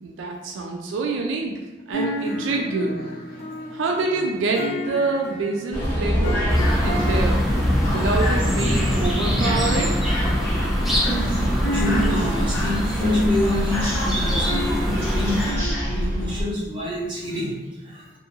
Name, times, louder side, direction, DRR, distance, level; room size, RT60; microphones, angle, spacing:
voice 1, 0.0-1.5 1.9-3.0 3.7-6.5 6.8-7.4 7.9-10.0, right 3 dB, 85° right, 1 dB, 0.3 m, -26 dB
sound 1, 1.9-8.3 8.7-15.7, equal, 60° left, 1.0 m, -31 dB
sound 2, 5.7-16.4, equal, 15° left, 1.1 m, -24 dB
sound 3, 6.5-15.5, equal, ahead, 0.5 m, -26 dB
voice 2, 10.5-17.5 17.8-18.1, left 1 dB, 25° right, -8 dB, 1.0 m, -28 dB
2.6 x 2.4 x 2.7 m, 1.1 s
head